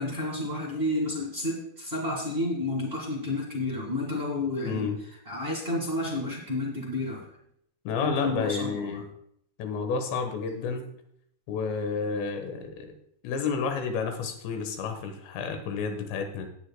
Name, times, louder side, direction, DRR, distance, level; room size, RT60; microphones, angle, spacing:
voice 1, 0.0-4.9 5.2-7.3 8.0-9.0, left 2 dB, 75° right, -2 dB, 0.5 m, -31 dB
voice 2, 4.7-5.0 7.9-9.0 9.6-10.9 11.5-13.0 13.2-16.5, left 5 dB, 85° left, 6 dB, 3.5 m, -30 dB
17.5 x 8.3 x 2.3 m, 0.71 s
omnidirectional pair, 4.9 m